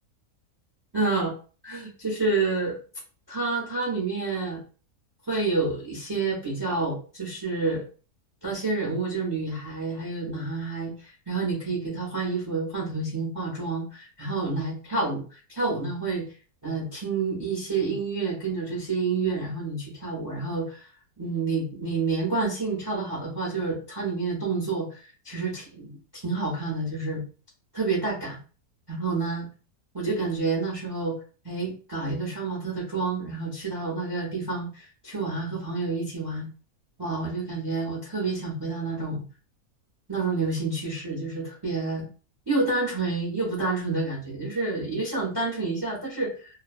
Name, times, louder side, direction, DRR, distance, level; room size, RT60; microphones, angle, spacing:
voice 1, 0.9-1.3 1.6-2.7 3.3-4.6 5.3-7.8 8.4-16.2 16.6-20.9 21.2-27.2 27.7-28.4 28.9-29.5 29.9-31.2 31.4-36.5 37.0-39.2 40.1-42.0 42.5-46.5, right 3 dB, 30° right, -3 dB, 0.4 m, -29 dB
2.4 x 2.1 x 2.4 m, 0.37 s
omnidirectional pair, 1.5 m